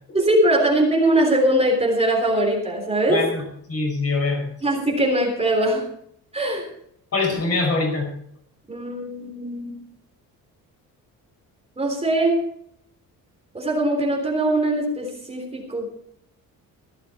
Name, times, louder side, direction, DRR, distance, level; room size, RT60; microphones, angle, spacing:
voice 1, 0.1-3.2 4.6-5.8 6.3-6.7 8.7-9.8 11.8-12.4 13.5-15.9, right 1 dB, 15° right, 0 dB, 3.6 m, -21 dB
voice 2, 3.1-4.5 7.1-8.1, left 3 dB, 40° left, 3 dB, 5.8 m, -24 dB
16.5 x 12.0 x 4.4 m, 0.70 s
cardioid pair, 130°, 36 cm